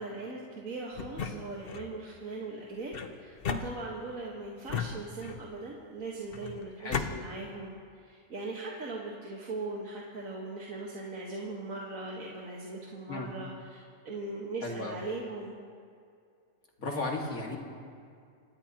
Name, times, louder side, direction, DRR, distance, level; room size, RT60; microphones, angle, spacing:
voice 1, 0.0-7.7 8.0-15.6, right 3 dB, 70° right, -3 dB, 2.1 m, -40 dB
sound 1, 0.9-1.9 2.9-4.2 4.7-5.6 6.3-7.1, left 6 dB, 50° left, 0.9 m, -36 dB
voice 2, 14.6-15.0 16.8-17.6, left 2 dB, 80° left, -1 dB, 2.6 m, -35 dB
26.5 x 17.0 x 3.0 m, 2.3 s
omnidirectional pair, 1.5 m